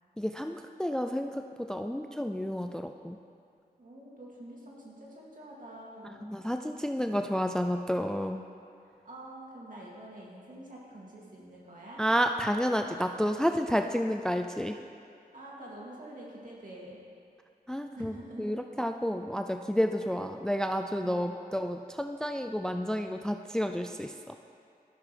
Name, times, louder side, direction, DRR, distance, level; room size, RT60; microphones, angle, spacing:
voice 1, 0.2-3.2 6.2-8.4 12.0-14.8 17.7-24.4, equal, 5° left, 6 dB, 0.4 m, -30 dB
voice 2, 3.8-6.3 8.8-12.0 15.3-17.0 17.9-18.6 21.0-21.4, right 1 dB, 55° right, -5 dB, 2.5 m, -47 dB
15.5 x 6.0 x 3.3 m, 2.4 s
cardioid pair, 50°, 16 cm